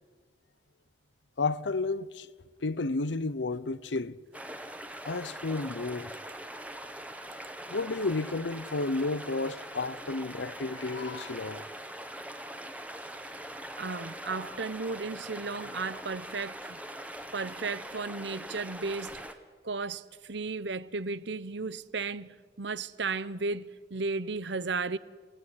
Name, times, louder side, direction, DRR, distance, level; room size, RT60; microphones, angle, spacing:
voice 1, 1.4-2.3 2.6-4.2 5.0-6.1 7.7-11.6, left 3 dB, 90° left, 0.9 m, -32 dB
sound 1, 4.3-19.3, right 1 dB, 10° right, 1.4 m, -42 dB
voice 2, 13.2-16.8 17.3-19.2 19.6-25.0, right 4 dB, 80° right, 0.9 m, -35 dB
28.0 x 17.5 x 9.8 m
head